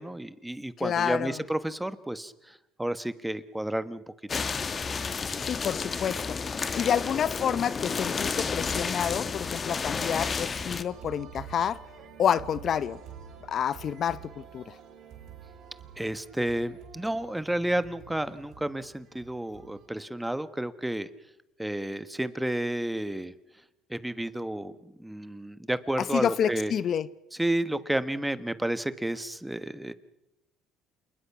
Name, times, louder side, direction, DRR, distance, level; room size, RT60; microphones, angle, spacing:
voice 1, 0.0-4.0 16.0-21.1 21.6-23.3 23.9-26.7 27.4-29.9, right 1 dB, 5° right, 1.3 m, -31 dB
voice 2, 0.8-1.4 5.4-6.4 6.7-11.8 12.2-13.0 13.5-14.7 26.0-27.1, left 8 dB, 50° left, 0.8 m, -28 dB
sound 1, 4.3-10.8, left 5 dB, 30° left, 1.4 m, -31 dB
sound 2, 10.8-19.9, right 7 dB, 65° right, 5.6 m, -48 dB
28.0 x 20.5 x 6.0 m
cardioid pair, 100°, 0 cm